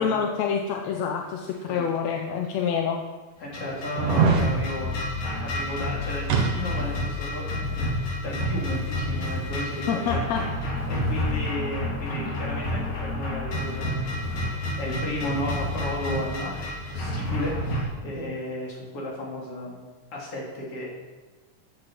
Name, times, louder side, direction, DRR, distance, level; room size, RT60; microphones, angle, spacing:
voice 1, 0.0-3.0 9.9-10.4 12.1-12.4, left 6 dB, 70° left, 3 dB, 1.9 m, -27 dB
sound 1, 2.0-2.1 2.7-2.8 3.9-4.5 6.3-7.0 7.3-7.4, right 5 dB, 80° right, 3.2 m, -23 dB
voice 2, 3.4-5.1 5.4-10.2 10.9-14.2 14.8-20.9, left 1 dB, 45° left, -3 dB, 4.0 m, -34 dB
sound 2, 3.5-17.8, left 1 dB, 85° left, 4.7 m, -29 dB
14.5 x 8.5 x 6.2 m, 1.3 s
omnidirectional pair, 3.7 m